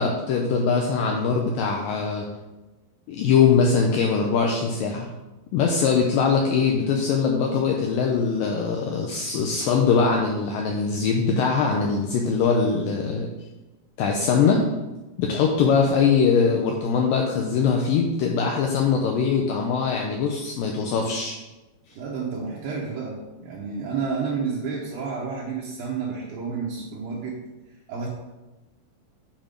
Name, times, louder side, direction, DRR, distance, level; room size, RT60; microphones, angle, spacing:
voice 1, 0.0-2.3 3.1-5.1 5.5-13.3 14.0-14.6 15.2-21.4, left 5 dB, 80° left, 1 dB, 2.1 m, -22 dB
voice 2, 22.0-27.4 27.9-28.1, right 5 dB, 70° right, -4 dB, 2.6 m, -30 dB
9.0 x 4.6 x 5.1 m, 1.1 s
omnidirectional pair, 4.5 m